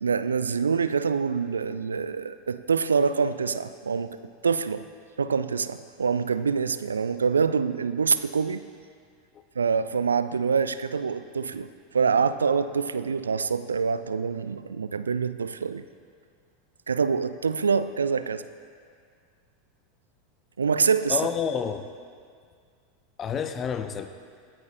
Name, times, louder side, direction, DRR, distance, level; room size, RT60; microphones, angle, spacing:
voice 1, 0.0-4.2 4.4-4.9 5.2-8.7 9.6-15.8 16.9-18.4 20.6-21.2, right 5 dB, 80° right, 13 dB, 0.4 m, -25 dB
voice 2, 21.1-21.9 23.2-24.1, left 7 dB, 30° left, 9 dB, 0.7 m, -29 dB
19.0 x 13.5 x 2.5 m, 2.1 s
figure-of-eight pair, 85°, 0 cm